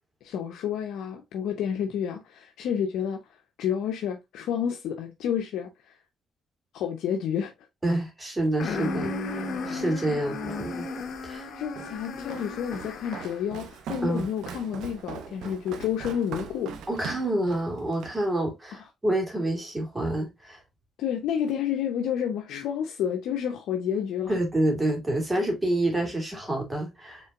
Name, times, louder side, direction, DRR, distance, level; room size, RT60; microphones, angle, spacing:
voice 1, 0.2-3.2 3.6-5.7 6.7-7.5 10.1-10.2 11.5-16.7 21.0-24.3, left 8 dB, 85° left, 0.7 m, -30 dB
voice 2, 7.8-10.9 11.2-11.5 14.0-14.3 16.9-20.6 24.3-27.3, right 1 dB, 20° right, 2.6 m, -28 dB
sound 1, 8.6-13.5, left 3 dB, 65° left, 1.1 m, -34 dB
Walk footsteps, 11.8-18.2, right 6 dB, 85° right, 0.9 m, -41 dB
5.5 x 3.8 x 2.4 m
cardioid pair, 90°, 0 cm